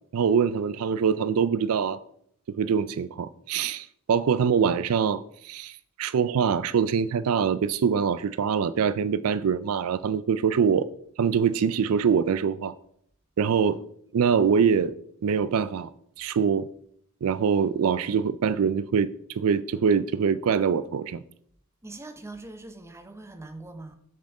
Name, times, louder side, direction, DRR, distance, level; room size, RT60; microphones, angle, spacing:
voice 1, 0.1-2.0 2.6-10.9 11.2-12.7 13.4-13.8 14.1-14.9 15.2-15.9 16.2-16.7 17.2-21.2, right 6 dB, 70° right, 0.4 m, -24 dB
voice 2, 21.8-24.0, right 2 dB, 10° right, 0.9 m, -42 dB
7.6 x 7.3 x 4.8 m
head